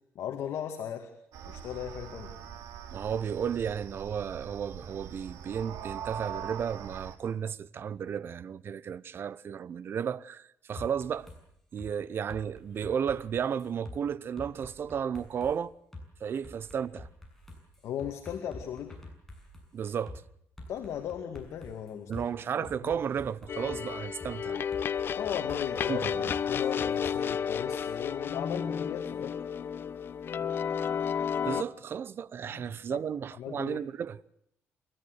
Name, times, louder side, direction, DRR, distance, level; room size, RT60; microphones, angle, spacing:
voice 1, 0.1-1.1 1.5-2.3 17.8-19.0 20.7-22.3 22.8-22.9 25.1-29.4 32.5-32.6 32.9-33.0 33.4-33.9, left 9 dB, 70° left, 2.3 m, -37 dB
sound 1, 1.3-7.2, right 8 dB, 90° right, 2.8 m, -42 dB
voice 2, 2.9-11.3 11.7-15.7 16.2-17.1 19.7-20.2 22.1-24.7 25.9-26.3 31.4-34.2, right 7 dB, 45° right, 0.8 m, -33 dB
sound 2, 10.8-11.4 11.8-11.9 12.3-14.0 14.4-15.6 15.9-16.0 16.4-19.7 20.1-20.2 20.6-22.2 22.6-23.8 24.2-24.3 24.7-27.2, left 1 dB, 5° left, 7.0 m, -47 dB
sound 3, 23.5-31.6, left 7 dB, 45° left, 0.8 m, -32 dB
29.0 x 13.5 x 8.1 m
cardioid pair, 125°, 5 cm